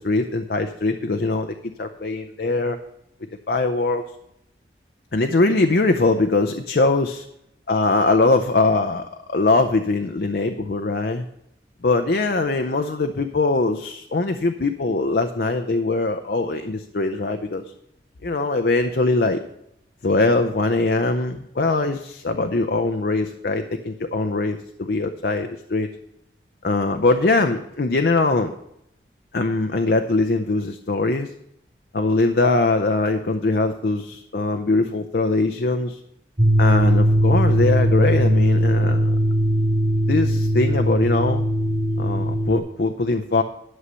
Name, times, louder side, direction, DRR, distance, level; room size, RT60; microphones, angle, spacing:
voice 1, 0.0-2.8 3.5-4.0 5.1-7.2 7.7-11.3 11.8-17.6 18.2-19.4 20.0-25.9 26.6-28.5 29.3-31.3 31.9-36.0 36.6-39.1 40.1-41.4 42.0-43.4, left 3 dB, 55° left, 7 dB, 0.5 m, -22 dB
sound 1, 36.4-42.6, equal, 40° right, 2.6 m, -19 dB
11.5 x 6.4 x 5.5 m, 0.79 s
head